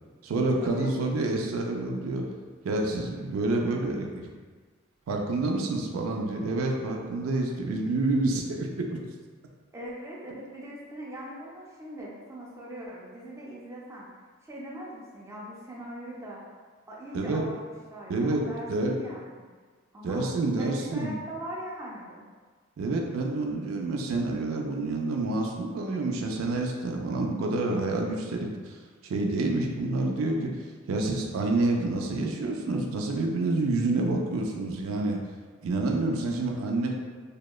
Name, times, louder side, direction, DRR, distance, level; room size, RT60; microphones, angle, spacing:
voice 1, 0.2-2.3 2.6-4.3 5.1-9.0 17.1-17.4 18.1-18.4 18.7-18.9 20.0-21.1 22.8-28.8 29.0-30.6 30.9-35.2 35.6-36.9, right 2 dB, 90° right, 1 dB, 0.3 m, -28 dB
voice 2, 9.7-14.1 14.4-16.4 16.9-17.6 17.9-19.4 19.9-22.2, equal, 15° right, -5 dB, 0.4 m, -41 dB
2.8 x 2.1 x 2.2 m, 1.5 s
head